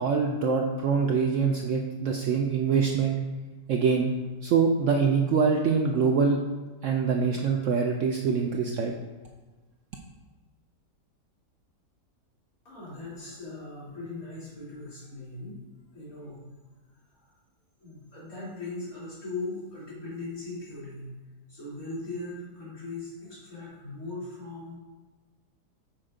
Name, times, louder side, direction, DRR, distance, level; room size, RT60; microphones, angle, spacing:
voice 1, 0.0-3.2 3.7-4.1 4.4-6.4 6.8-8.9, right 5 dB, 75° right, 1 dB, 0.7 m, -24 dB
voice 2, 12.6-15.6 15.9-16.4 16.9-17.3 17.8-21.1 21.5-24.7, left 2 dB, 55° left, -8 dB, 3.0 m, -39 dB
6.2 x 4.3 x 5.0 m, 1.3 s
omnidirectional pair, 1.8 m